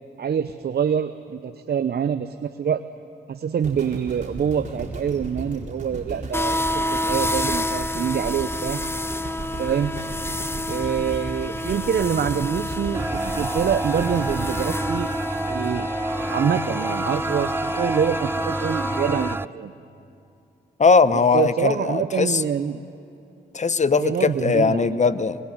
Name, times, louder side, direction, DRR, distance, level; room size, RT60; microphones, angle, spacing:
voice 1, 0.2-2.8 3.3-8.8 9.6-9.9 10.7-15.1 15.5-15.9 16.3-19.7 21.1-22.8 23.9-25.0, right 8 dB, 60° right, 10 dB, 0.8 m, -25 dB
sound 1, 3.6-15.8 16.4-16.5, right 2 dB, 40° right, 4.3 m, -35 dB
sound 2, 6.3-19.3, left 1 dB, 10° left, 1.0 m, -29 dB
sound 3, 12.9-19.5, right 2 dB, 10° right, 0.5 m, -29 dB
voice 2, 20.8-22.4 23.5-25.4, left 4 dB, 40° left, 15 dB, 1.0 m, -19 dB
21.0 x 20.5 x 9.4 m, 2.6 s
supercardioid pair, 50°, 19 cm